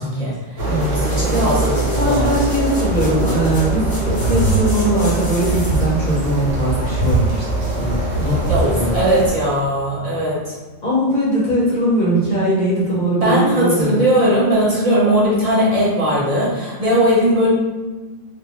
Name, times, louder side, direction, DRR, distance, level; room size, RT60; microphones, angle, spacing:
voice 1, 0.0-2.3 8.5-10.6 13.2-17.5, right 1 dB, 35° right, -8 dB, 0.6 m, -19 dB
voice 2, 0.6-1.6 2.0-7.5 7.8-9.0 10.8-14.0, right 1 dB, 45° left, -6 dB, 0.6 m, -20 dB
sound 1, 0.6-9.3, right 2 dB, 70° right, 1.1 m, -21 dB
sound 2, 0.7-6.0 6.5-6.6, equal, 20° left, 0.9 m, -35 dB
2.5 x 2.3 x 2.9 m, 1.2 s
omnidirectional pair, 1.3 m